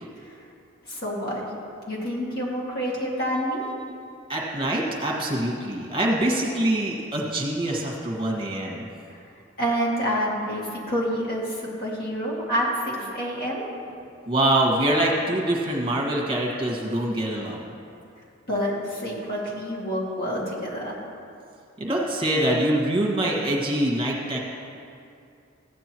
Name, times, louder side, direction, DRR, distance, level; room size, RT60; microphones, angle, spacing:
voice 1, 0.9-1.4 1.9-3.6 9.6-13.6 18.5-21.0, equal, 50° left, -5 dB, 2.4 m, -28 dB
voice 2, 4.3-8.8 14.3-17.6 21.8-24.4, right 1 dB, 25° right, -1 dB, 1.6 m, -24 dB
15.0 x 9.2 x 3.0 m, 2.5 s
head